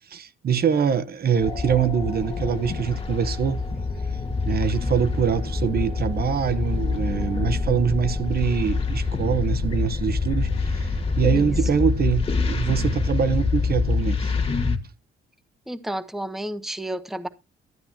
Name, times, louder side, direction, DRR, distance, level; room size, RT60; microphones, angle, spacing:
voice 1, 0.1-3.6 4.5-14.3, right 7 dB, 50° right, 0.9 m, -24 dB
sound 1, 1.4-14.8, left 4 dB, 30° left, 1.7 m, -26 dB
voice 2, 15.7-17.3, right 1 dB, ahead, 0.8 m, -31 dB
12.0 x 8.7 x 2.9 m
cardioid pair, 90°, 20 cm